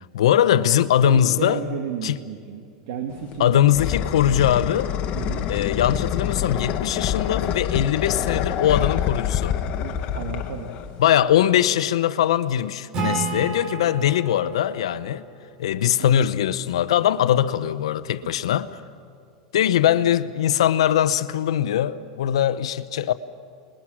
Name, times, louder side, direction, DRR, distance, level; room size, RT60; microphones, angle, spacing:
voice 1, 0.1-1.6 2.0-2.1 3.4-4.9 5.5-9.6 11.0-15.3 15.6-18.7 19.5-23.1, left 10 dB, 85° left, 0.8 m, -21 dB
voice 2, 1.0-3.7 5.1-5.5 9.8-10.7 15.9-16.2 18.2-18.3, right 7 dB, 65° right, 2.0 m, -33 dB
sound 1, 3.1-11.1, left 9 dB, 45° left, 1.4 m, -26 dB
Acoustic guitar / Strum, 12.9-16.4, right 4 dB, 35° right, 4.7 m, -32 dB
27.5 x 21.0 x 6.2 m
supercardioid pair, 130°, 3 cm